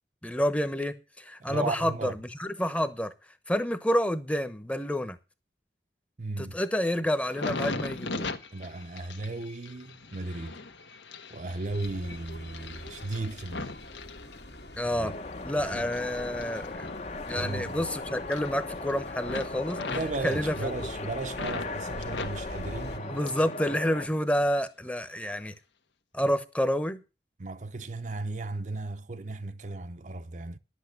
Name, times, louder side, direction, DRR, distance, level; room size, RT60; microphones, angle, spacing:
voice 1, 0.2-2.1 2.4-3.1 3.5-5.2 6.4-8.3 14.7-15.1 15.4-16.9 17.3-19.8 20.2-20.7 23.1-25.5 26.1-27.0, equal, 10° left, 0.9 m, -29 dB
voice 2, 1.4-2.1 6.2-6.6 8.5-10.6 11.3-13.7 14.9-15.1 15.6-15.9 17.3-17.8 19.8-23.3 27.4-30.6, right 2 dB, 45° right, 0.7 m, -35 dB
sound 1, 7.2-14.9 15.3-17.9 18.2-18.9 19.2-21.7 22.0-23.6 23.9-24.6 25.2-25.4, left 3 dB, 90° left, 1.4 m, -40 dB
sound 2, 11.7-23.0, left 1 dB, 70° left, 1.9 m, -45 dB
sound 3, 15.0-24.1, left 3 dB, 40° left, 0.8 m, -38 dB
11.5 x 8.2 x 6.6 m
head